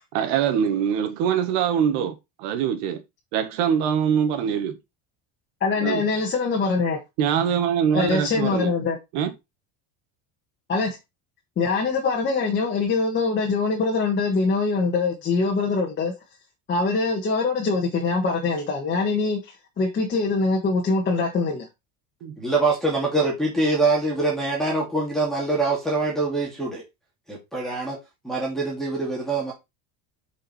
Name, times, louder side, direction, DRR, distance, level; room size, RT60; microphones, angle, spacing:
voice 1, 0.1-3.0 3.3-4.8 5.8-6.0 7.2-8.7 9.1-9.3 22.2-22.4, right 8 dB, 70° right, 1.8 m, -23 dB
voice 2, 5.6-7.0 7.9-9.0 10.7-11.0 11.6-16.1 16.7-21.6, left 4 dB, 25° left, 1.7 m, -23 dB
voice 3, 22.4-26.8 27.3-28.0 28.2-29.5, right 3 dB, ahead, 2.4 m, -24 dB
7.6 x 5.2 x 4.4 m
cardioid pair, 160°, 45 cm